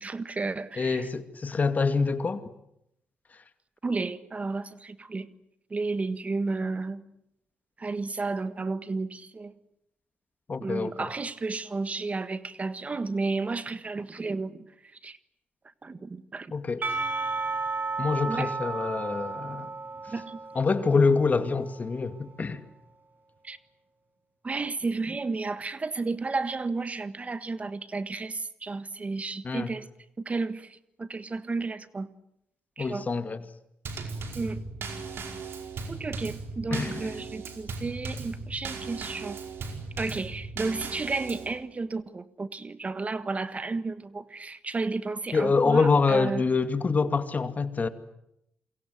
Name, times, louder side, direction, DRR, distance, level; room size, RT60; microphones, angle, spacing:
voice 1, 0.0-1.1 3.8-5.3 5.7-7.0 7.8-9.5 10.6-15.2 15.8-16.5 18.3-18.5 20.1-20.4 23.4-23.6 24.4-29.9 30.2-32.1 32.8-33.1 34.3-34.6 35.9-39.4 40.0-46.4, right 3 dB, 35° right, 1.5 m, -32 dB
voice 2, 0.8-2.4 10.5-11.1 16.5-16.8 18.0-19.7 20.5-22.6 29.4-29.7 32.8-33.4 36.7-37.1 45.3-47.9, left 4 dB, 40° left, 2.4 m, -25 dB
Percussion / Church bell, 16.8-22.1, right 4 dB, 50° right, 5.9 m, -33 dB
Drum kit / Snare drum / Bass drum, 33.9-41.5, right 4 dB, 65° right, 5.0 m, -37 dB
28.0 x 23.5 x 8.1 m
supercardioid pair, 65°, 4 cm